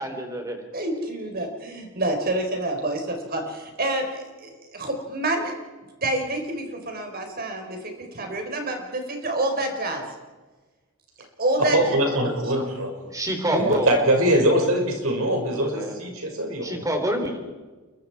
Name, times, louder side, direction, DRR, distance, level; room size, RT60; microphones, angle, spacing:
voice 1, 0.0-0.6 13.1-13.9 15.5-16.0 16.6-17.4, right 1 dB, 15° right, 4 dB, 3.9 m, -27 dB
voice 2, 0.7-5.5 6.0-10.0 11.4-11.8 13.5-13.8, right 1 dB, 45° right, 4 dB, 4.6 m, -27 dB
voice 3, 11.7-13.1 13.6-16.9, right 1 dB, 75° right, 2 dB, 5.9 m, -22 dB
29.5 x 23.0 x 4.8 m, 1.3 s
head